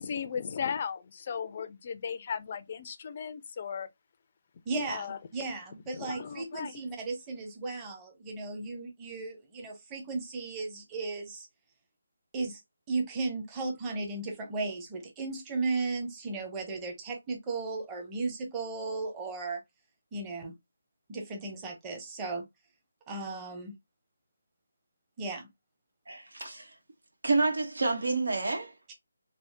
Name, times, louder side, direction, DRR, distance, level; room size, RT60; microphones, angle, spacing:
voice 1, 0.0-3.9 4.9-5.2 5.9-6.7, left 7 dB, 35° left, 0.4 m, -36 dB
voice 2, 4.7-11.5 12.3-12.6 12.9-19.6 20.1-20.5 21.1-22.4 23.1-23.7 25.2-25.5 28.9-29.0, right 3 dB, 15° right, 0.8 m, -35 dB
voice 3, 26.1-26.7 27.2-28.7, right 3 dB, 80° right, 1.1 m, -29 dB
3.3 x 2.0 x 2.8 m
figure-of-eight pair, 165°, 0 cm